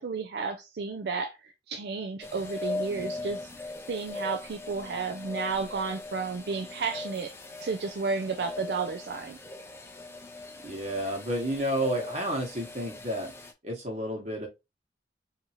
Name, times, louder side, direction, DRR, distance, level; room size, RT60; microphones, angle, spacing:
voice 1, 0.0-3.4 3.9-7.3 7.6-9.4, right 4 dB, 70° right, 0.4 m, -32 dB
sound 1, 2.2-13.5, left 2 dB, 15° left, 0.5 m, -40 dB
voice 2, 10.6-13.3 13.6-14.5, equal, 40° right, 1.3 m, -31 dB
3.7 x 2.8 x 2.9 m
head